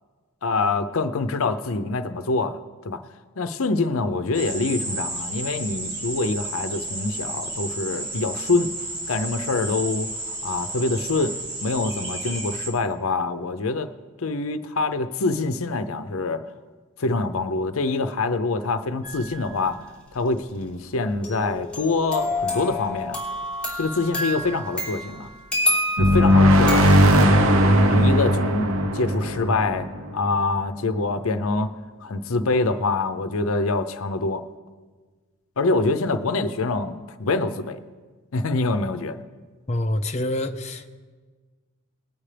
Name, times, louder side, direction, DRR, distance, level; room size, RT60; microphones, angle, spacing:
voice 1, 0.4-3.0 3.4-8.7 9.1-10.1 10.4-13.9 14.2-16.5 17.0-19.8 20.1-23.2 23.8-25.3 26.0-26.9 27.9-31.7 32.0-34.4 35.6-37.8 38.3-39.2, left 3 dB, 80° left, 0.6 m, -25 dB
sound 1, 4.3-12.7, right 2 dB, 25° right, 3.3 m, -32 dB
sound 2, 19.0-19.5 21.2-27.0, left 1 dB, 5° left, 4.1 m, -28 dB
sound 3, 26.0-30.6, equal, 75° right, 0.9 m, -18 dB
voice 2, 39.7-40.9, left 1 dB, 30° left, 0.6 m, -26 dB
20.5 x 8.7 x 3.3 m
head